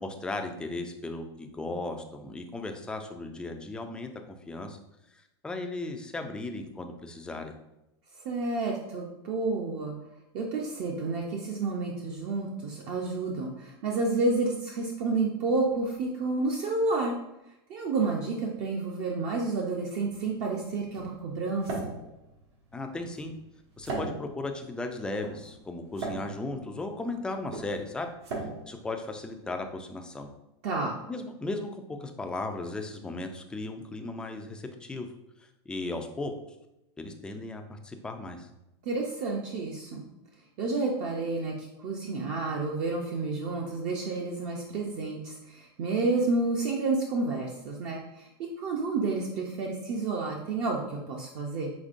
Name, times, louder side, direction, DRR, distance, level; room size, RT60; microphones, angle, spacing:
voice 1, 0.0-4.8 5.1-7.5 22.7-23.3 23.8-28.1 28.4-30.3 31.1-35.1 35.4-36.3 37.0-38.5, left 2 dB, 5° left, 4 dB, 0.3 m, -36 dB
voice 2, 8.2-10.0 10.3-17.2 17.7-21.9 30.6-31.0 38.8-40.0 40.6-51.7, right 3 dB, 45° right, -1 dB, 0.6 m, -30 dB
sound 1, 20.0-29.8, right 3 dB, 80° right, 1.2 m, -40 dB
5.1 x 3.5 x 2.5 m, 0.89 s
supercardioid pair, 145°, 14 cm